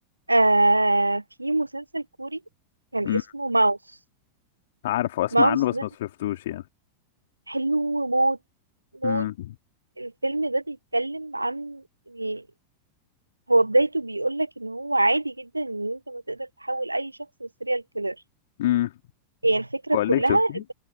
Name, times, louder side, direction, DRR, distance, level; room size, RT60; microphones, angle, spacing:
voice 1, 0.3-2.4 2.9-3.8 5.3-5.8 7.5-8.4 9.0-9.3 10.0-12.4 13.5-17.1 17.4-18.1 19.4-20.5, right 2 dB, 85° right, 1.1 m, -24 dB
voice 2, 4.8-6.6 9.0-9.5 18.6-18.9 19.9-20.6, left 14 dB, 55° left, 3.2 m, -26 dB
figure-of-eight pair, 90°, 0 cm